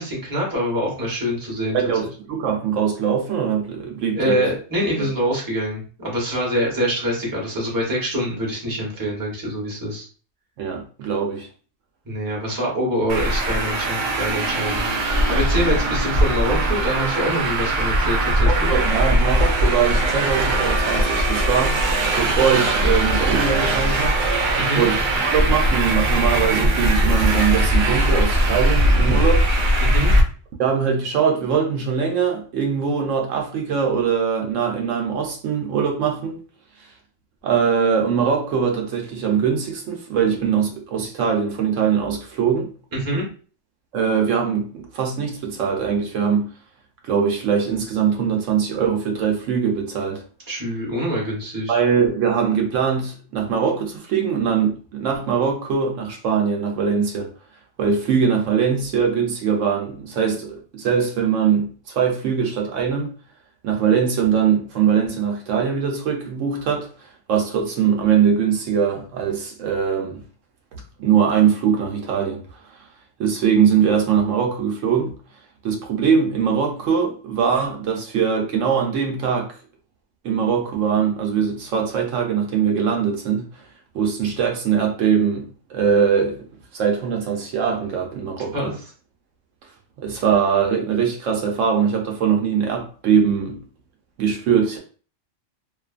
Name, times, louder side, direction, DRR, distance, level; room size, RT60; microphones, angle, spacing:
voice 1, 0.0-1.8 4.1-10.1 12.0-18.8 24.6-24.9 29.8-30.1 42.9-43.2 50.5-51.8 88.5-88.7, equal, 20° right, 0.9 m, -25 dB
voice 2, 1.7-4.4 5.0-5.1 10.6-11.5 18.5-21.8 22.2-24.2 24.8-29.5 30.6-36.4 37.4-42.7 43.9-46.5 47.0-50.2 51.7-57.3 57.8-63.1 63.6-66.9 67.3-70.2 71.0-72.6 73.2-75.1 75.6-79.5 80.2-83.4 83.9-86.4 86.7-88.7 90.0-93.6 94.2-94.8, right 7 dB, 85° right, 1.0 m, -21 dB
Traffic noise roadway noise, 13.1-30.2, right 1 dB, 55° right, 0.6 m, -20 dB
2.5 x 2.3 x 2.4 m
omnidirectional pair, 1.3 m